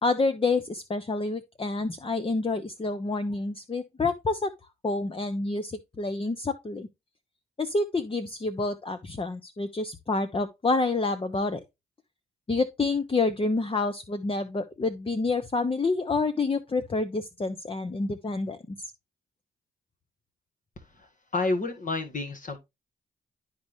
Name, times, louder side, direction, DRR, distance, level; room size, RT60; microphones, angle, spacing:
voice 1, 0.0-4.5 4.8-6.9 7.6-11.6 12.5-18.8, left 3 dB, 30° left, 1.0 m, -28 dB
voice 2, 20.8-22.6, left 3 dB, 45° left, 1.8 m, -30 dB
12.0 x 4.2 x 3.3 m
supercardioid pair, 50°, 19 cm